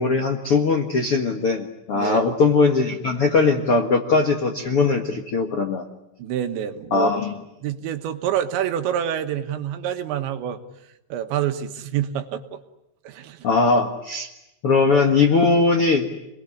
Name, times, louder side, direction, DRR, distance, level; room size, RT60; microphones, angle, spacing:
voice 1, 0.0-5.8 6.9-7.3 13.4-14.3 14.6-16.1, left 4 dB, 70° left, 4 dB, 1.3 m, -20 dB
voice 2, 1.9-2.3 6.2-7.2 7.6-12.6 13.0-13.5, right 10 dB, 75° right, 7 dB, 3.5 m, -27 dB
28.0 x 21.0 x 9.9 m, 0.91 s
omnidirectional pair, 5.4 m